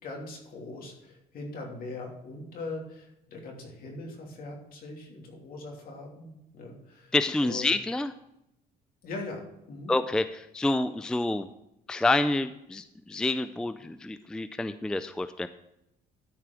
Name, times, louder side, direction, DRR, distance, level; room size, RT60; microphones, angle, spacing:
voice 1, 0.0-7.1 7.4-7.7 9.0-9.4 9.7-9.9, left 2 dB, 60° left, 0 dB, 3.0 m, -41 dB
voice 2, 7.1-8.1 9.9-11.5 11.9-15.5, left 2 dB, 5° left, 11 dB, 0.4 m, -28 dB
13.0 x 4.8 x 6.1 m, 0.85 s
cardioid pair, 110°, 17 cm